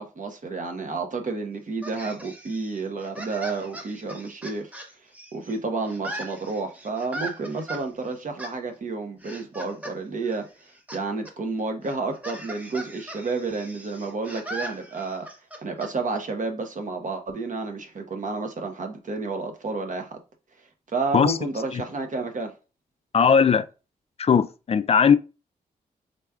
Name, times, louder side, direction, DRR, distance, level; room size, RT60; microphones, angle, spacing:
voice 1, 0.0-4.7 5.3-10.5 10.9-15.3 15.6-20.2 20.9-22.5, right 3 dB, 50° right, 0.9 m, -30 dB
sound 1, 1.8-5.6 5.9-7.8 8.4-8.5 9.2-10.0 10.2-11.0 11.3-11.4 11.8-15.9, right 1 dB, 10° right, 0.9 m, -39 dB
voice 2, 23.1-23.7 24.2-25.2, left 6 dB, 35° left, 0.4 m, -18 dB
4.0 x 3.4 x 2.3 m
supercardioid pair, 50°, 17 cm